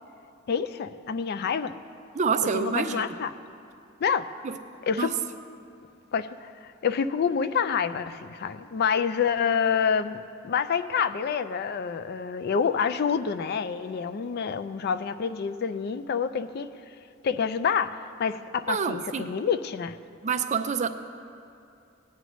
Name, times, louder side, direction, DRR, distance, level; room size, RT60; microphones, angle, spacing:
voice 1, 0.5-1.7 2.5-3.3 4.0-4.3 4.9-5.1 6.1-16.7 17.2-20.0, left 6 dB, 50° left, 12 dB, 0.3 m, -27 dB
voice 2, 2.1-3.1 4.4-4.6 4.9-5.1 18.7-19.3 20.2-20.9, right 5 dB, 35° right, 8 dB, 0.4 m, -27 dB
17.5 x 9.2 x 3.1 m, 2.6 s
head